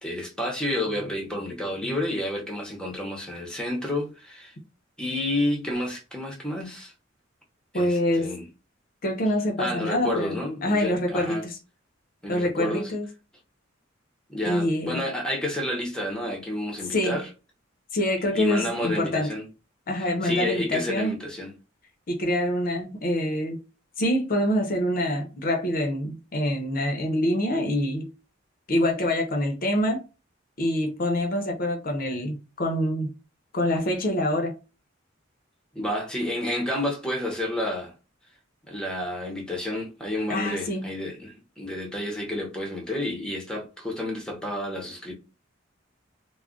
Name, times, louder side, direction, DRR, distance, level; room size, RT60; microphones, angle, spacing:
voice 1, 0.0-4.5 5.0-6.9 7.7-8.5 9.6-11.4 12.2-12.9 14.3-17.3 18.3-19.5 20.0-21.5 35.7-37.9 38.7-45.1, left 1 dB, 5° left, 0.7 m, -30 dB
voice 2, 7.7-8.3 9.0-11.6 12.3-13.1 14.4-15.0 16.9-17.2 17.9-19.3 19.9-21.1 22.1-23.6 24.0-28.1 28.7-30.0 30.6-33.1 33.5-34.5 40.3-40.8, left 1 dB, 45° left, 0.6 m, -25 dB
2.3 x 2.1 x 3.7 m
head